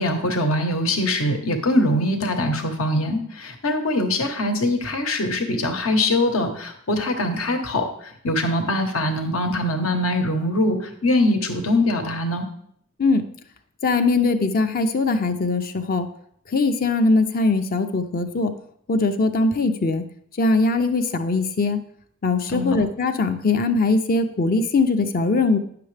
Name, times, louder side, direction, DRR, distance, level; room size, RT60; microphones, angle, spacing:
voice 1, 0.0-12.5 22.5-22.8, left 1 dB, 80° left, 5 dB, 1.2 m, -23 dB
voice 2, 13.8-16.1 16.5-18.5 18.9-20.0 20.4-21.8 22.2-25.6, left 3 dB, 45° left, 7 dB, 0.5 m, -21 dB
9.5 x 6.7 x 3.3 m, 0.66 s
head